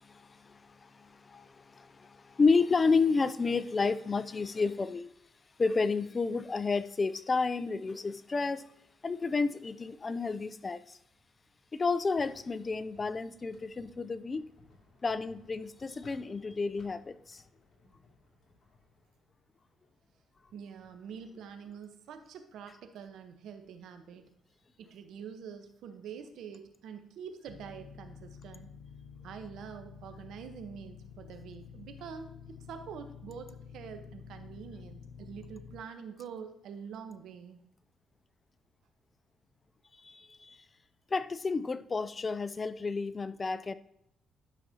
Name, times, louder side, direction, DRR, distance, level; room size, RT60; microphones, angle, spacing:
voice 1, 0.0-5.1 5.6-8.6 9.0-11.0 11.7-14.5 15.0-17.4 40.0-40.6 41.1-43.7, left 4 dB, 30° left, 0.4 m, -31 dB
sound 1, 12.0-21.5, left 4 dB, 50° left, 2.4 m, -62 dB
voice 2, 20.5-24.3 24.8-28.7 29.2-37.6, right 7 dB, 80° right, 0.9 m, -46 dB
sound 2, 27.5-35.8, left 7 dB, 85° left, 0.5 m, -50 dB
11.5 x 5.9 x 2.8 m
cardioid pair, 90°, 0 cm